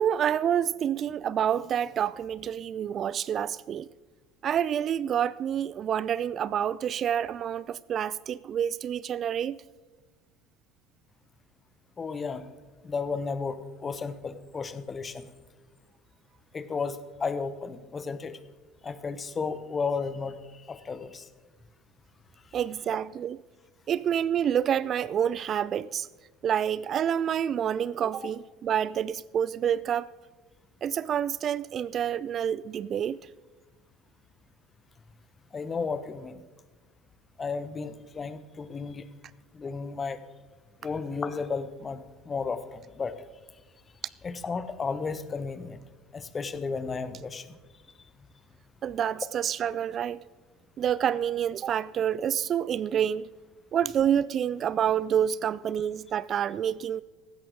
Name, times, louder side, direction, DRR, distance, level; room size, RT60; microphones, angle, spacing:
voice 1, 0.0-3.9 4.4-9.6 22.5-23.4 23.9-26.1 26.4-30.1 30.8-33.2 48.8-50.2 50.8-53.3 53.7-57.0, right 9 dB, 40° right, 0.3 m, -28 dB
voice 2, 12.0-12.4 12.8-13.6 13.8-15.3 16.5-18.3 18.8-20.3 20.7-21.2 35.5-36.3 37.4-39.0 39.5-40.2 40.8-43.1 44.2-45.8 46.1-47.5, left 5 dB, 30° left, 1.0 m, -33 dB
16.5 x 13.5 x 3.9 m
figure-of-eight pair, 65°, 0 cm